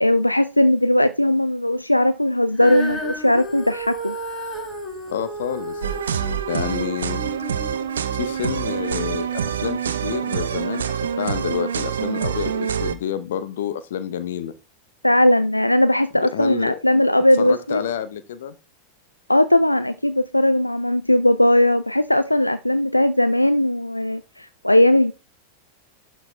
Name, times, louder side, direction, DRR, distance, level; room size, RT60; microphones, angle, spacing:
voice 1, 0.0-4.1 15.0-17.8 19.3-25.1, left 1 dB, 85° left, 0.4 m, -18 dB
Female singing, 2.5-8.9 9.6-9.7, right 1 dB, 20° left, 4.7 m, -33 dB
voice 2, 5.1-5.8 6.5-7.2 8.1-14.5 16.2-16.8 17.4-18.6, left 9 dB, 60° left, 0.8 m, -28 dB
sound 1, 5.8-13.0, right 8 dB, 65° right, 0.7 m, -26 dB
11.5 x 4.5 x 3.3 m
figure-of-eight pair, 90°, 0 cm